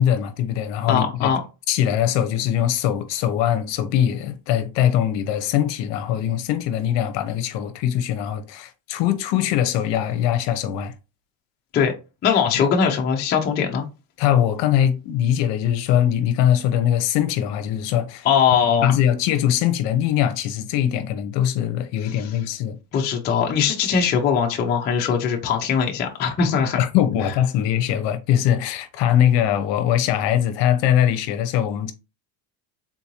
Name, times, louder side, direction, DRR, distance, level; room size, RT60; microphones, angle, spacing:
voice 1, 0.0-1.3 1.7-10.9 14.2-18.3 18.8-22.8 26.8-31.9, left 10 dB, 65° left, 0.7 m, -21 dB
voice 2, 0.9-1.4 11.7-11.9 12.2-13.8 18.2-19.0 22.0-22.3 22.9-26.9, left 7 dB, 25° left, 0.4 m, -21 dB
3.8 x 2.5 x 2.8 m
cardioid pair, 160°, 47 cm